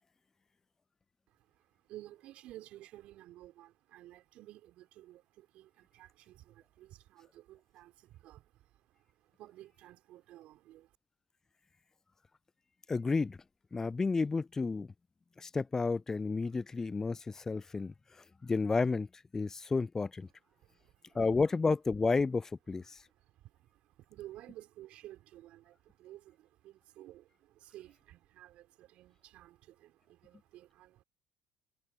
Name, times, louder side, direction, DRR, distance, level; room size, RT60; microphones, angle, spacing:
voice 1, 1.3-10.9 20.6-21.2 23.0-31.0, right 14 dB, 65° right, 4.6 m, -54 dB
voice 2, 12.9-13.4 13.7-14.9 15.4-20.3 21.1-23.0, left 4 dB, 20° left, 0.3 m, -31 dB
hypercardioid pair, 65°, 2 cm